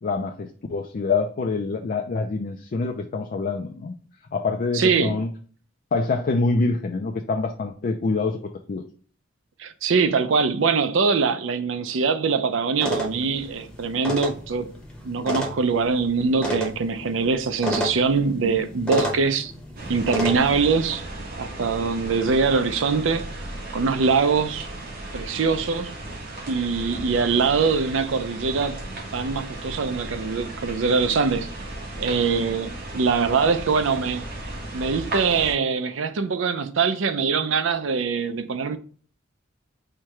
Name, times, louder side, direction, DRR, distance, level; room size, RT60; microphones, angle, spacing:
voice 1, 0.0-3.9 4.3-5.3 5.9-8.8, left 3 dB, 45° left, 0.4 m, -26 dB
voice 2, 4.7-5.2 9.6-14.7 15.0-19.5 19.9-21.1 21.4-23.4 23.7-24.7 25.1-25.9 26.5-28.8 29.1-31.5 32.0-34.3 34.7-38.8, right 5 dB, 85° right, 0.5 m, -23 dB
sound 1, 12.8-20.4, left 1 dB, 5° left, 0.8 m, -31 dB
sound 2, 19.8-35.6, right 1 dB, 50° right, 1.2 m, -35 dB
4.5 x 2.2 x 4.7 m
head